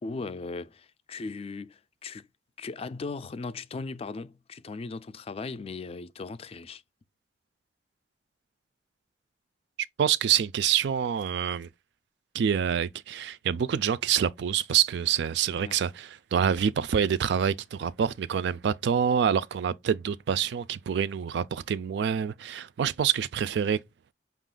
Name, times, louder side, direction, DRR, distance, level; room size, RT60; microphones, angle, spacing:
voice 1, 0.0-2.3 2.6-6.8 15.6-15.8, left 3 dB, 35° left, 0.4 m, -38 dB
voice 2, 10.0-11.7 12.3-23.8, right 8 dB, 70° right, 0.3 m, -26 dB
5.5 x 2.4 x 3.7 m
head